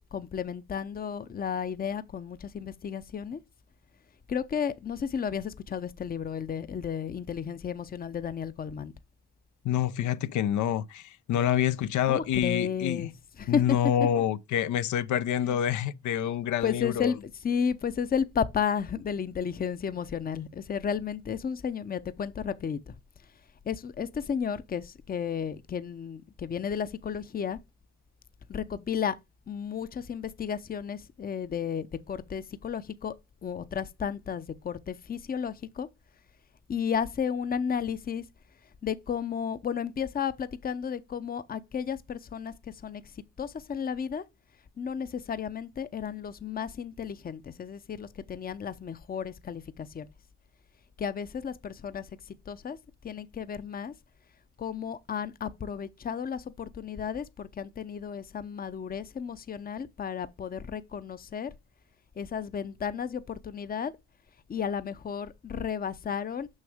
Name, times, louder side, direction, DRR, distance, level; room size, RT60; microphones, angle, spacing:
voice 1, 0.1-3.4 4.3-8.9 11.3-11.5 12.0-13.8 15.4-15.6 16.2-16.3 16.6-22.9 23.6-27.6 28.5-29.2 29.5-33.1 33.4-35.9 36.7-38.2 38.8-44.2 44.8-50.1 51.0-52.8 53.0-53.9 54.6-61.5 62.2-63.9 64.5-66.5, left 7 dB, 30° left, 0.6 m, -33 dB
voice 2, 9.6-13.1 13.5-17.1, left 10 dB, 75° left, 0.6 m, -27 dB
6.4 x 6.1 x 3.5 m
cardioid pair, 90°, 30 cm